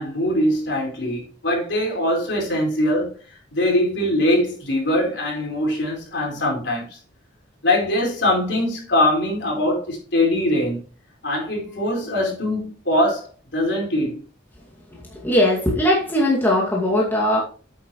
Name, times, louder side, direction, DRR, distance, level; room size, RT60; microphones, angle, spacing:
voice 1, 0.0-7.0 7.6-10.8 11.2-14.2, left 1 dB, 65° left, 4.7 m, -22 dB
voice 2, 15.2-17.4, left 1 dB, 10° left, 2.2 m, -19 dB
8.6 x 8.6 x 3.1 m
head